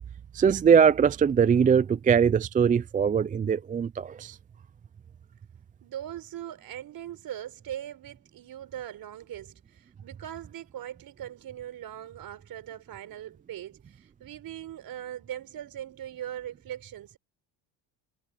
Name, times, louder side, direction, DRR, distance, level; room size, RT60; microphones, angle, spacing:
voice 1, 0.3-4.4, right 7 dB, 20° right, 0.4 m, -21 dB
voice 2, 5.8-17.2, right 11 dB, 50° right, 4.6 m, -40 dB
cardioid pair, 115°, 45 cm